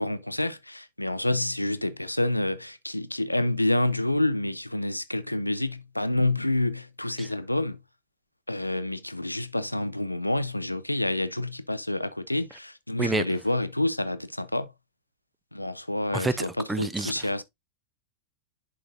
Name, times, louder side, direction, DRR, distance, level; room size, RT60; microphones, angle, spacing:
voice 1, 0.0-7.8 8.5-14.7 15.5-17.4, left 1 dB, 85° left, 0.5 m, -28 dB
voice 2, 16.1-17.3, right 2 dB, 10° right, 0.5 m, -29 dB
11.0 x 3.8 x 2.5 m
figure-of-eight pair, 90°, 0 cm